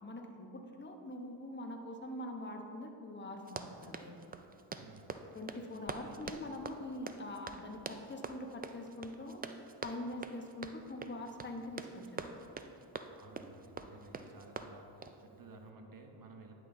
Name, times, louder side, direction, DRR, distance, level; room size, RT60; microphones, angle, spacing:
voice 1, 0.0-4.1 5.3-9.4 9.8-12.2, left 1 dB, 25° left, 3 dB, 1.1 m, -44 dB
Run, 3.4-15.2, right 4 dB, 20° right, 0.4 m, -46 dB
voice 2, 4.8-5.2 5.9-6.2 13.1-16.5, right 3 dB, 45° right, 4 dB, 1.2 m, -55 dB
9.9 x 6.2 x 3.9 m, 2.8 s
cardioid pair, 70°, 47 cm